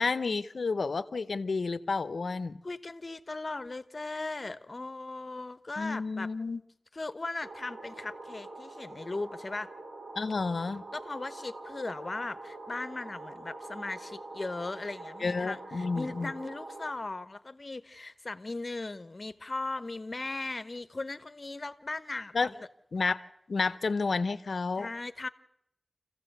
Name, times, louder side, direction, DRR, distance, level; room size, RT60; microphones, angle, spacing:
voice 1, 0.0-2.6 5.8-6.6 10.2-10.8 15.2-16.3 22.3-22.5 22.9-23.2 23.5-24.9, left 4 dB, 85° left, 0.8 m, -30 dB
voice 2, 2.6-6.3 6.9-9.7 10.9-22.7 24.8-25.3, left 2 dB, 45° left, 1.0 m, -38 dB
sound 1, 7.4-16.9, right 2 dB, 65° right, 2.9 m, -45 dB
28.0 x 15.0 x 8.0 m
wide cardioid pair, 75°, 0 cm